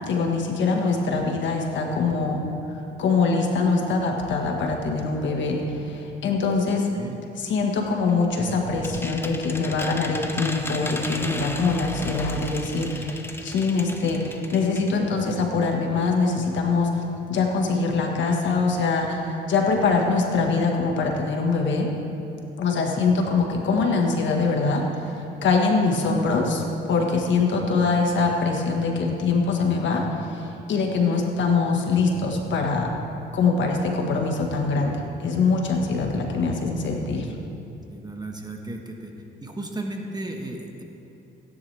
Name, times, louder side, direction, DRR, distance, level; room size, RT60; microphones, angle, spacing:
voice 1, 0.0-2.4 3.0-6.9 7.4-17.0 17.3-21.9 22.6-24.8 25.4-26.6 26.9-30.0 30.3-32.9 33.3-37.3, left 4 dB, 70° left, 1 dB, 1.6 m, -23 dB
sound 1, 8.1-15.0 15.3-15.4 15.6-15.7, left 1 dB, 10° left, 0.9 m, -35 dB
voice 2, 37.9-39.1 39.4-40.8, right 2 dB, 20° right, 2 dB, 1.5 m, -34 dB
16.5 x 10.0 x 3.5 m, 3.0 s
cardioid pair, 90°, 20 cm